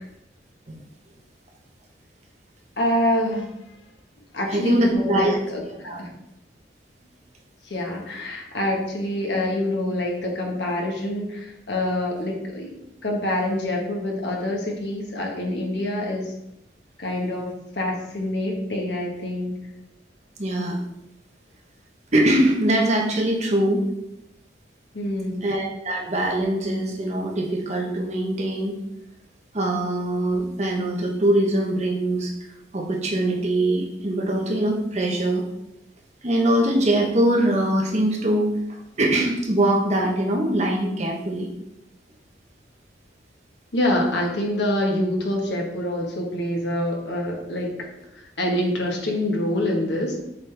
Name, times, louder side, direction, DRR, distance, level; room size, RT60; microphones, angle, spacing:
voice 1, 2.8-3.5 4.3-6.1 7.6-12.7 13.0-16.3 17.0-19.6 24.9-25.5 43.7-47.9 48.1-50.2, left 1 dB, 70° left, 0 dB, 1.4 m, -26 dB
voice 2, 4.5-5.4 5.8-6.0 20.4-20.8 22.1-23.9 25.4-28.8 29.5-32.3 32.7-35.4 36.2-38.5 39.0-41.5, right 1 dB, 35° right, 0 dB, 1.0 m, -22 dB
7.1 x 4.0 x 3.4 m, 0.86 s
head